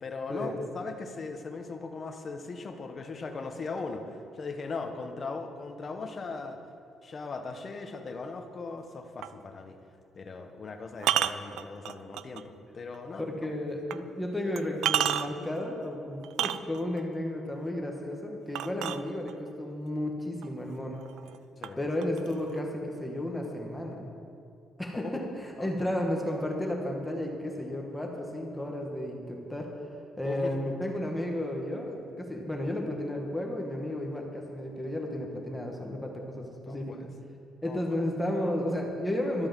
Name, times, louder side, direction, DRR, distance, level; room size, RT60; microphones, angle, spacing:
voice 1, 0.0-6.6 7.0-9.8 10.1-13.5 21.6-21.9 25.0-25.3 25.6-25.9 30.2-30.6 36.6-37.1 37.6-38.0, left 4 dB, 30° left, 5 dB, 1.1 m, -39 dB
sound 1, 9.2-9.4 11.0-12.4 12.9-13.0 13.9-14.0 14.6-15.5 16.2-17.0 18.5-19.5 20.4-20.5 20.9-21.4 21.6-22.6, right 11 dB, 85° right, 0.4 m, -30 dB
voice 2, 13.2-21.0 21.8-24.1 24.8-29.7 30.2-36.9 37.6-39.5, left 1 dB, 5° left, 0 dB, 1.3 m, -33 dB
13.0 x 8.7 x 7.4 m, 2.6 s
cardioid pair, 170°, 0 cm